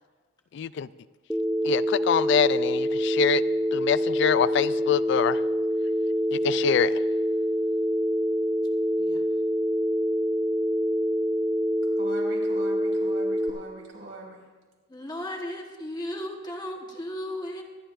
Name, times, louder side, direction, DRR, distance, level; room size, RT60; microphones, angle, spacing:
voice 1, 0.5-0.9 1.6-3.4 3.7-5.4 6.3-7.0, left 7 dB, 60° left, 17 dB, 0.3 m, -25 dB
Telephone, 1.3-13.5, equal, ahead, 0.6 m, -26 dB
voice 2, 12.0-14.4, right 1 dB, 80° right, -3 dB, 4.4 m, -42 dB
voice 3, 14.9-17.6, left 1 dB, 20° left, 1 dB, 1.2 m, -35 dB
24.5 x 11.0 x 2.5 m, 1.3 s
head